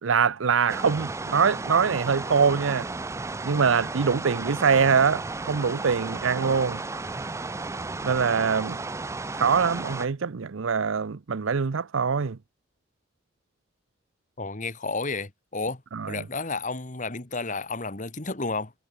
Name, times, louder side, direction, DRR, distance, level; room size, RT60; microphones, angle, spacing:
voice 1, 0.0-2.9 3.4-6.8 8.0-8.8 9.3-12.4 15.9-16.2, right 6 dB, 90° right, 0.6 m, -23 dB
sound 1, 0.7-10.1, right 3 dB, 15° right, 0.4 m, -34 dB
voice 2, 14.4-15.8 16.1-18.7, left 3 dB, 40° left, 1.8 m, -31 dB
head